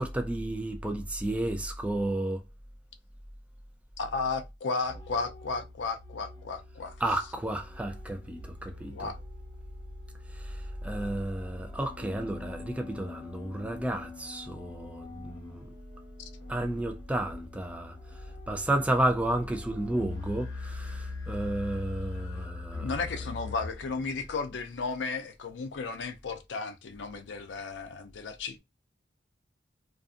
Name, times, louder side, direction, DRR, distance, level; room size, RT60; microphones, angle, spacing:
voice 1, 0.0-2.4 7.0-9.1 10.8-15.7 16.5-17.9 18.5-22.9, right 1 dB, 5° right, 0.3 m, -32 dB
voice 2, 4.0-7.0 8.9-9.2 22.8-28.6, left 4 dB, 85° left, 0.5 m, -34 dB
sound 1, 4.8-24.3, left 3 dB, 20° left, 1.0 m, -43 dB
2.5 x 2.4 x 2.4 m
head